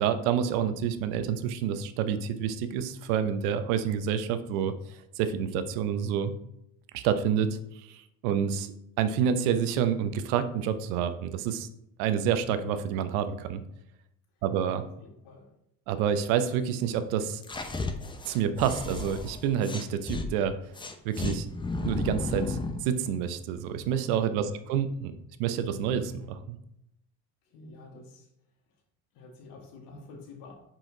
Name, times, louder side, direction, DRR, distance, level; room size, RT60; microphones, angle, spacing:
voice 1, 0.0-6.3 6.9-11.7 12.0-13.6 14.4-14.8 15.9-17.4 18.2-20.5 21.0-21.5 21.8-25.1 25.4-26.6, right 8 dB, 75° right, 11 dB, 0.8 m, -28 dB
voice 2, 15.0-15.5 24.4-24.6 27.4-28.3 29.1-30.5, left 3 dB, 65° left, 1 dB, 1.7 m, -48 dB
sound 1, 17.4-20.3 20.7-22.8, left 3 dB, 10° left, 0.6 m, -33 dB
5.7 x 5.0 x 3.9 m, 0.79 s
supercardioid pair, 95°, 43 cm